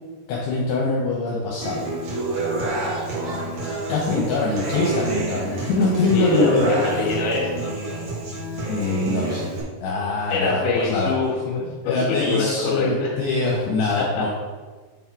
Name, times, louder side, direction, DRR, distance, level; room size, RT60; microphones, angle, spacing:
voice 1, 0.3-1.9 3.9-6.7 8.7-9.5 9.8-11.1 11.8-14.3, left 3 dB, 75° left, -4 dB, 2.8 m, -23 dB
Human voice / Acoustic guitar, 1.6-9.6, right 2 dB, 60° right, 1.4 m, -28 dB
voice 2, 6.0-7.7 10.3-11.6 11.9-13.2 13.9-14.3, left 4 dB, 55° left, -3 dB, 2.8 m, -25 dB
7.1 x 4.2 x 4.6 m, 1.4 s
omnidirectional pair, 5.1 m